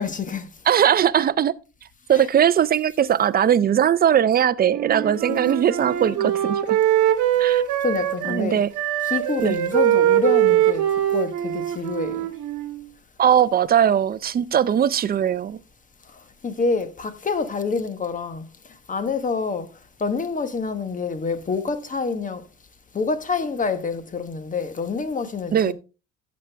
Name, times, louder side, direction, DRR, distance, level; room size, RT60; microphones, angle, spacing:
voice 1, 0.0-0.5 2.1-2.3 5.1-6.3 7.8-8.6 9.0-10.9 11.1-12.3 16.4-18.4 18.9-19.7 20.0-22.4 22.9-25.7, left 4 dB, 25° left, 1.1 m, -27 dB
voice 2, 0.7-1.5 2.1-6.8 7.4-7.6 8.3-8.7 9.4-9.6 13.2-15.6 25.5-25.7, right 9 dB, 30° right, 0.5 m, -19 dB
Wind instrument woodwind instrument, 4.7-8.4 8.7-12.8, right 12 dB, 65° right, 1.6 m, -22 dB
12.0 x 7.5 x 3.4 m
cardioid pair, 125°, 33 cm